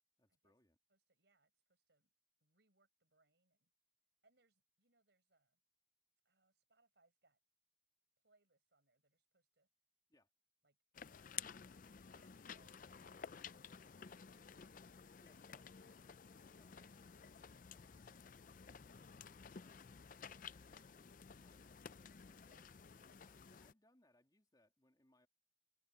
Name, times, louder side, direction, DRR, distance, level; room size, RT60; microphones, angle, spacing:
voice 1, 0.2-0.8 10.1-10.3 15.2-19.9 20.2-22.7 23.2-25.3, left 1 dB, 20° left, 3.1 m, -75 dB
voice 2, 0.9-2.1 2.4-3.7 4.2-5.6 6.2-7.4 8.2-9.7 10.6-14.7 15.8-16.0 16.6-17.1 22.4-22.9, right 3 dB, 65° right, 5.3 m, -79 dB
sound 1, 10.9-23.7, left 7 dB, 45° left, 0.4 m, -54 dB
head